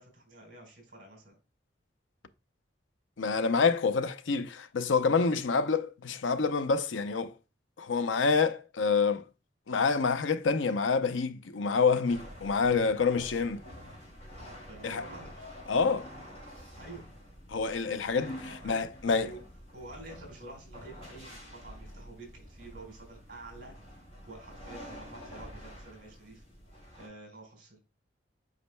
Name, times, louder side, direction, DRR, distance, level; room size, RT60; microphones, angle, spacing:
voice 1, 0.0-1.4 14.6-15.4 16.7-17.0 18.0-19.4 19.7-23.7 24.3-26.4 27.0-27.8, right 2 dB, 50° right, 4.1 m, -49 dB
voice 2, 3.2-7.3 7.8-9.2 9.7-13.6 14.8-15.0 15.7-16.1 17.5-19.3, left 5 dB, 90° left, 0.6 m, -27 dB
sound 1, 12.1-27.1, equal, 35° left, 3.5 m, -48 dB
8.3 x 5.3 x 2.2 m
head